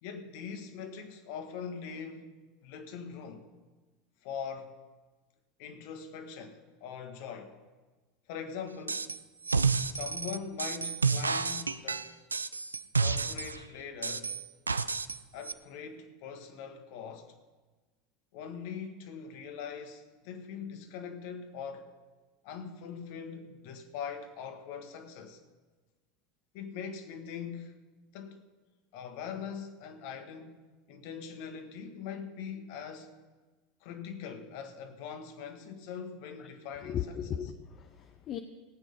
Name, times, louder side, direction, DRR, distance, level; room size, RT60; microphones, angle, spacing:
voice 1, 0.0-2.3 2.6-3.4 4.2-4.8 5.6-7.6 8.3-9.1 9.9-12.1 13.0-14.3 15.3-17.3 18.3-21.9 22.4-25.4 26.5-27.7 28.1-28.4 28.9-33.1 33.8-37.5, left 7 dB, 55° left, 1.6 m, -42 dB
sound 1, 8.9-9.2 9.4-13.6 14.0-15.2 15.4-15.5, right 4 dB, 85° right, 0.4 m, -30 dB
voice 2, 36.8-38.4, left 9 dB, 40° left, 0.8 m, -37 dB
18.0 x 8.5 x 5.6 m
figure-of-eight pair, 75°, 0 cm